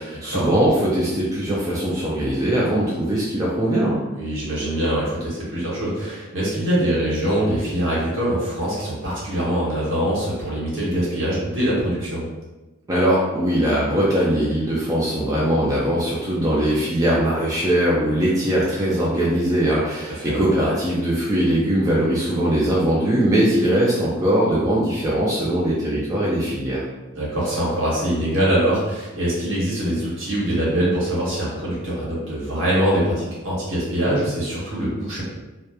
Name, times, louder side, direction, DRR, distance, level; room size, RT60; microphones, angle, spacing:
voice 1, 0.0-4.0 12.9-26.8, right 1 dB, 15° right, -7 dB, 0.3 m, -21 dB
voice 2, 4.1-12.2 20.2-20.4 27.1-35.2, right 1 dB, 65° right, -7 dB, 1.1 m, -23 dB
2.8 x 2.1 x 2.3 m, 1.1 s
head